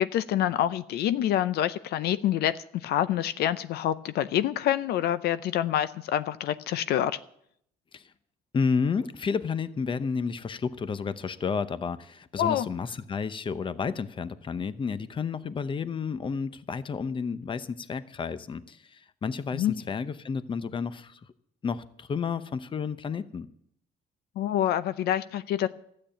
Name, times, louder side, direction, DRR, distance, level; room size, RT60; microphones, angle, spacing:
voice 1, 0.0-7.2 12.4-12.7 19.5-19.7 24.4-25.7, left 11 dB, 70° left, 14 dB, 0.6 m, -26 dB
voice 2, 8.5-21.2 21.6-23.5, left 5 dB, 30° left, 14 dB, 0.8 m, -31 dB
12.5 x 8.7 x 8.9 m, 0.70 s
cardioid pair, 110°, 17 cm